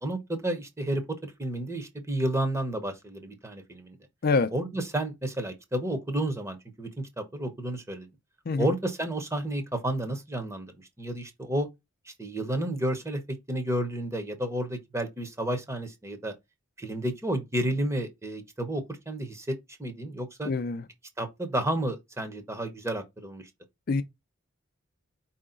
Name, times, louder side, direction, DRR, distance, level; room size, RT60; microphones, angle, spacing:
voice 1, 0.0-4.0 4.5-8.1 8.6-10.7 11.0-11.7 12.1-16.3 16.8-19.5 19.8-20.5 21.2-23.5, right 1 dB, 15° right, 0.9 m, -31 dB
voice 2, 20.4-20.8 23.9-24.0, left 4 dB, 50° left, 0.4 m, -25 dB
4.7 x 2.8 x 3.7 m
head